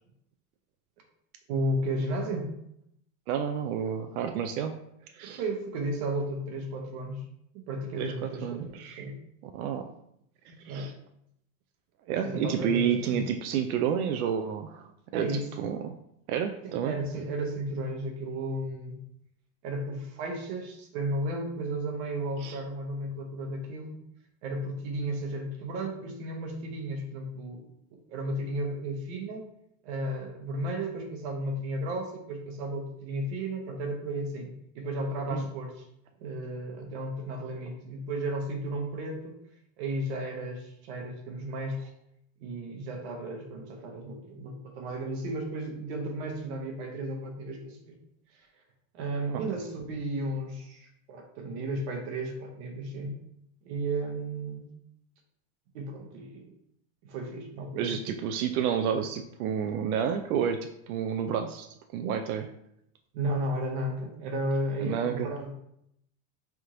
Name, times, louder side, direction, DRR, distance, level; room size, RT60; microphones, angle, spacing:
voice 1, 1.5-2.5 5.2-7.2 7.5-9.2 10.5-10.9 12.2-13.2 15.1-15.5 16.6-19.0 19.6-24.0 24.4-27.6 28.1-29.5 29.8-35.9 36.2-39.4 39.8-41.9 42.4-48.0 48.3-48.5 48.9-53.2 53.6-54.7 55.7-56.5 57.0-58.2 63.1-65.5, right 1 dB, 50° right, 3 dB, 0.9 m, -34 dB
voice 2, 3.3-4.8 5.1-5.4 8.0-9.0 9.4-9.9 10.6-10.9 12.1-15.3 15.6-15.9 16.3-16.9 22.4-22.6 35.3-35.5 49.3-49.5 57.8-62.5 64.8-65.3, right 8 dB, 90° right, 6 dB, 0.5 m, -30 dB
3.5 x 3.0 x 3.7 m, 0.75 s
supercardioid pair, 165°, 42 cm